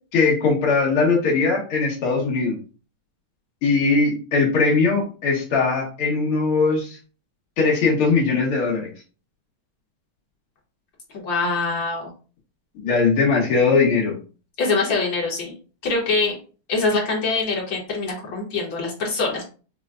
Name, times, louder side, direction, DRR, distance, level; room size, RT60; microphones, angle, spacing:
voice 1, 0.1-2.6 3.6-7.0 7.6-8.9 12.8-14.2, left 4 dB, 85° left, -2 dB, 2.2 m, -20 dB
voice 2, 11.2-12.1 14.6-15.5 15.8-16.4 16.7-19.5, left 3 dB, 65° left, -2 dB, 1.9 m, -24 dB
5.9 x 2.2 x 2.4 m, 0.36 s
omnidirectional pair, 2.3 m